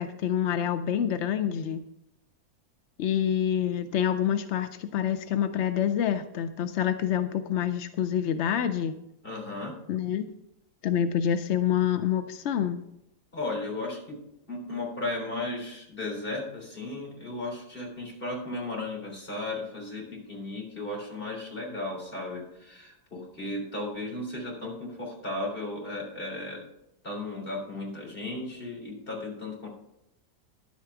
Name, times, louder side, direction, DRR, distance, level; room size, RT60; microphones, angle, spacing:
voice 1, 0.0-1.8 3.0-8.9 9.9-10.3 10.8-12.8, left 9 dB, 65° left, 10 dB, 0.7 m, -27 dB
voice 2, 9.2-9.7 13.3-14.2 14.5-26.6 27.0-29.7, left 2 dB, 35° left, -2 dB, 3.8 m, -35 dB
11.0 x 8.4 x 4.7 m, 0.82 s
omnidirectional pair, 1.7 m